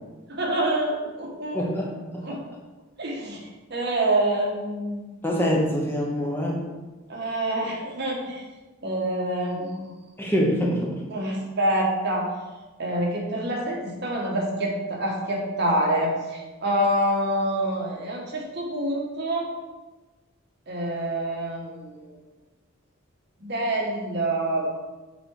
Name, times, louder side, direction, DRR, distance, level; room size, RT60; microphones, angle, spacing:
voice 1, 0.3-1.6 2.2-2.4 3.0-5.3 7.1-8.4 8.8-9.8 11.1-12.3 12.8-19.5 20.7-22.1 23.4-24.7, right 1 dB, 55° right, -2 dB, 1.4 m, -26 dB
voice 2, 1.5-2.4 5.2-6.6 10.2-10.9, equal, 10° left, -3 dB, 1.0 m, -25 dB
7.7 x 3.8 x 4.8 m, 1.2 s
head